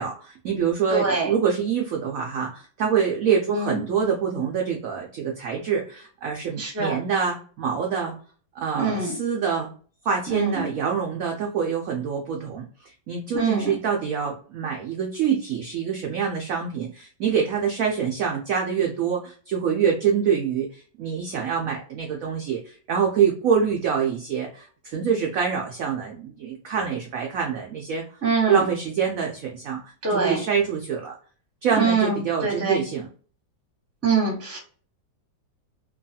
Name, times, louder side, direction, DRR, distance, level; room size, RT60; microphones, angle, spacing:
voice 1, 0.0-8.1 8.6-9.7 10.0-28.0 28.4-29.8 30.1-31.2 31.6-33.1, right 7 dB, 80° right, 0 dB, 0.7 m, -25 dB
voice 2, 0.9-1.3 3.5-3.8 6.6-6.9 8.7-9.1 10.3-10.7 13.3-13.7 28.2-28.6 30.0-30.4 31.8-32.8 34.0-34.6, right 4 dB, 15° right, -1 dB, 0.5 m, -24 dB
3.1 x 2.3 x 2.7 m, 0.42 s
omnidirectional pair, 2.0 m